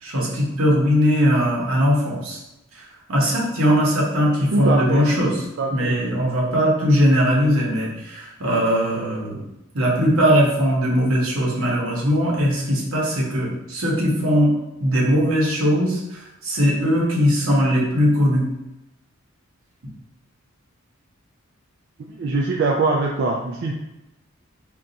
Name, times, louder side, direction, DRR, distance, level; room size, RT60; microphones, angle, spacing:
voice 1, 0.0-2.4 3.1-5.3 5.7-9.4 9.7-14.5 14.8-18.4, equal, 80° right, -4 dB, 1.0 m, -20 dB
voice 2, 4.5-5.1 5.6-6.0 22.1-23.7, right 3 dB, 55° right, -1 dB, 0.3 m, -22 dB
2.6 x 2.3 x 3.9 m, 0.91 s
head